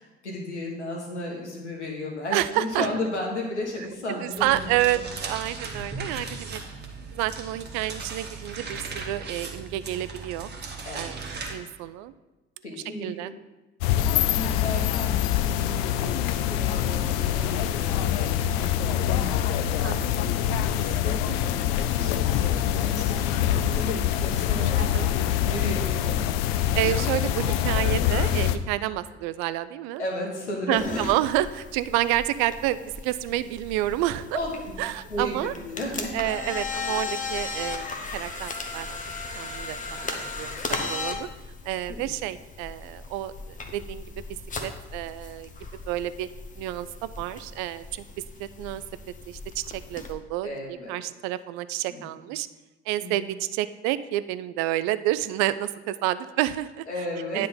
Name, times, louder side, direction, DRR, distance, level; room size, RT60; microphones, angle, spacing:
voice 1, 0.2-5.0 5.7-5.8 10.8-11.5 12.6-13.3 13.8-20.1 20.7-24.8 25.4-26.2 30.0-31.0 34.3-34.7 35.1-36.1 41.9-42.1 50.4-51.0 51.9-52.0 53.0-53.3 56.9-57.5, left 1 dB, 85° left, -1 dB, 1.4 m, -34 dB
voice 2, 2.3-2.9 4.1-6.6 7.1-10.5 10.9-12.1 13.0-13.3 19.8-20.2 24.8-25.1 26.7-30.0 30.7-34.3 34.8-35.5 36.1-37.9 38.1-39.0 39.4-41.3 41.6-44.2 44.6-45.5 45.9-46.3 46.6-48.0 48.4-48.8 49.3-49.6 49.9-50.5 50.9-52.5 52.9-56.9 57.3-57.5, right 14 dB, 55° right, 14 dB, 0.4 m, -29 dB
sound 1, 4.4-11.5, right 4 dB, 30° right, 1.3 m, -37 dB
sound 2, 13.8-28.6, left 11 dB, 65° left, 0.5 m, -25 dB
sound 3, 30.8-50.1, left 4 dB, 25° left, 0.9 m, -37 dB
9.5 x 3.7 x 5.4 m, 1.1 s
figure-of-eight pair, 55°, 33 cm